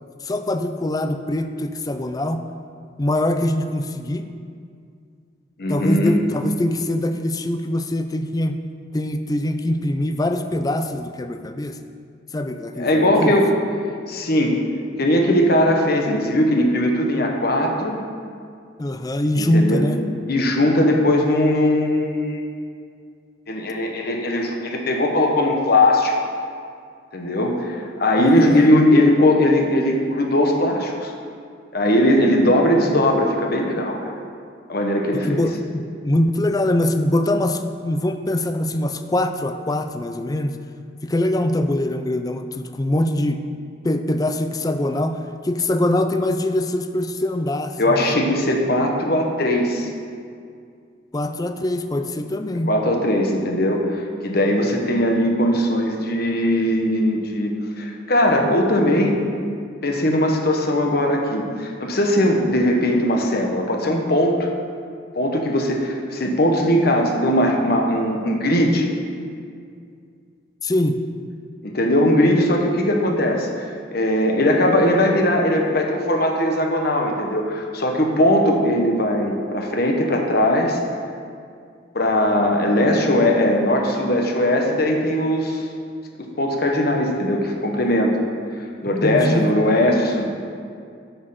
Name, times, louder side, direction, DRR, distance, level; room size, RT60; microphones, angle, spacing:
voice 1, 0.2-2.4 3.0-4.3 5.7-8.6 8.9-11.8 12.3-13.4 18.8-20.0 28.2-28.7 35.3-40.6 41.0-43.4 43.8-48.1 51.1-52.7 70.6-71.0 89.0-89.5, left 1 dB, 20° left, 8 dB, 0.4 m, -23 dB
voice 2, 5.6-6.2 12.8-13.5 14.1-14.5 15.0-18.0 19.4-19.8 20.3-22.4 23.5-26.3 27.1-31.1 31.7-34.2 34.7-35.4 47.8-49.9 52.7-57.5 57.8-59.2 59.8-64.5 65.1-68.9 71.6-80.8 81.9-85.7 86.2-88.1 88.8-90.3, left 1 dB, 50° left, 2 dB, 1.2 m, -19 dB
9.4 x 6.6 x 5.7 m, 2.3 s
head